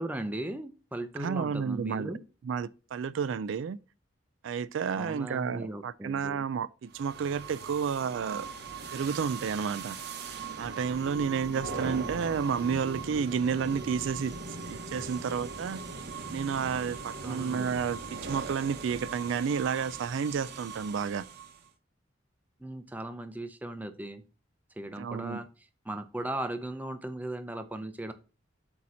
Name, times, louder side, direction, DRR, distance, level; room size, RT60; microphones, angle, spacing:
voice 1, 0.0-2.2 4.9-6.5 17.2-17.8 22.6-24.2 24.8-28.1, right 1 dB, 10° right, 0.6 m, -38 dB
voice 2, 1.2-2.1 2.4-3.8 4.4-8.5 8.9-10.0 10.6-14.3 14.7-15.8 16.3-21.2 25.0-25.4, right 6 dB, 75° right, 0.3 m, -31 dB
sound 1, 6.9-21.7, right 4 dB, 55° right, 0.9 m, -40 dB
8.2 x 2.9 x 6.2 m
head